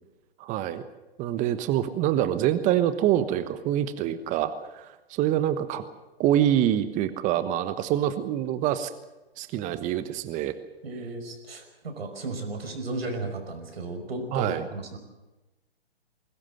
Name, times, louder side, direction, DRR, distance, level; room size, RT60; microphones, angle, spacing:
voice 1, 0.4-0.8 1.2-5.8 6.2-8.9 9.4-10.6 14.3-14.6, right 11 dB, 25° right, 12 dB, 1.2 m, -25 dB
voice 2, 10.8-15.0, right 2 dB, 75° right, 5 dB, 5.5 m, -34 dB
21.5 x 18.0 x 7.8 m, 1.1 s
hypercardioid pair, 125°, 31 cm